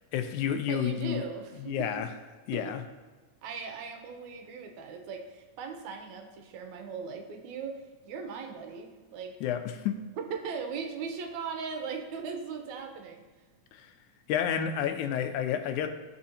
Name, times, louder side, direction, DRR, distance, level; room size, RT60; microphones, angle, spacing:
voice 1, 0.1-1.2 1.6-2.1 2.5-2.8 9.4-10.0 13.7-13.9 14.3-15.9, left 9 dB, 85° left, 8 dB, 2.0 m, -30 dB
voice 2, 0.7-2.0 2.5-2.6 3.4-9.4 10.2-13.2, right 5 dB, 80° right, 4 dB, 2.2 m, -38 dB
14.5 x 5.0 x 2.8 m, 1.3 s
omnidirectional pair, 3.4 m